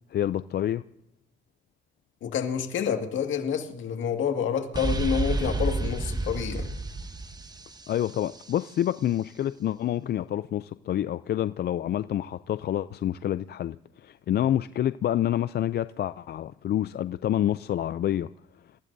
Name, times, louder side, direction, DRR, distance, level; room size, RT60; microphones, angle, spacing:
voice 1, 0.1-0.8 7.9-18.3, left 11 dB, 55° left, 0.4 m, -28 dB
voice 2, 2.2-6.7, left 7 dB, 75° left, 2.0 m, -28 dB
sound 1, 4.7-8.5, right 2 dB, 20° right, 1.1 m, -30 dB
27.5 x 16.0 x 2.7 m
cardioid pair, 90°, 20 cm